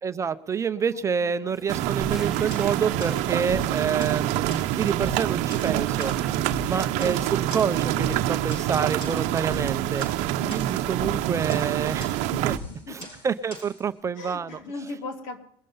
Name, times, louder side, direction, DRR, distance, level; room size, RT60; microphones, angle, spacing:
voice 1, 0.0-6.1 6.6-10.0 10.5-12.6 12.9-14.6, right 6 dB, 25° right, 11 dB, 0.6 m, -28 dB
voice 2, 0.9-1.5 6.7-7.1 10.4-11.1 12.3-13.0 14.2-15.4, left 3 dB, 70° left, 5 dB, 2.8 m, -40 dB
Gurgling / Toilet flush, 1.5-6.8, right 2 dB, 5° right, 1.1 m, -45 dB
sound 1, 1.7-12.6, right 13 dB, 65° right, 0.8 m, -26 dB
sound 2, 2.0-13.8, left 1 dB, 40° left, 7.1 m, -41 dB
22.0 x 7.5 x 5.4 m, 0.67 s
supercardioid pair, 125°, 13 cm